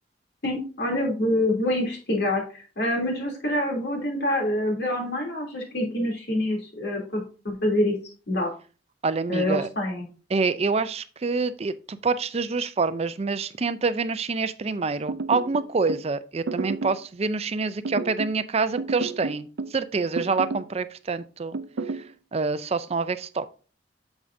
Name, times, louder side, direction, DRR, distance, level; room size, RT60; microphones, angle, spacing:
voice 1, 0.4-8.0 8.3-8.5 9.3-10.1, left 1 dB, 65° left, 3.0 m, -26 dB
voice 2, 9.0-9.7 10.3-21.6 21.9-22.0 22.3-23.5, right 4 dB, 35° right, 0.5 m, -26 dB
sound 1, 15.1-16.1 16.5-17.0 17.9-18.4 18.8-19.8 20.2-20.7 21.5-22.1, right 3 dB, 90° right, 0.5 m, -31 dB
8.3 x 7.2 x 2.6 m
head